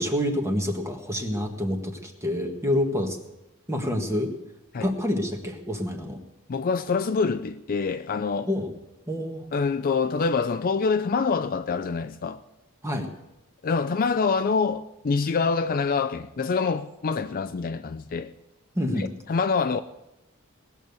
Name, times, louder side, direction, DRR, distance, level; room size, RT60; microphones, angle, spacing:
voice 1, 0.0-3.2 3.7-4.3 4.7-6.2 8.5-8.7 9.1-9.5 12.8-13.1 18.7-19.1, left 1 dB, 15° right, 1.6 m, -27 dB
voice 2, 6.5-8.5 9.5-12.4 13.6-18.3 19.0-19.8, left 5 dB, 40° left, 0.4 m, -26 dB
19.0 x 7.1 x 8.0 m
head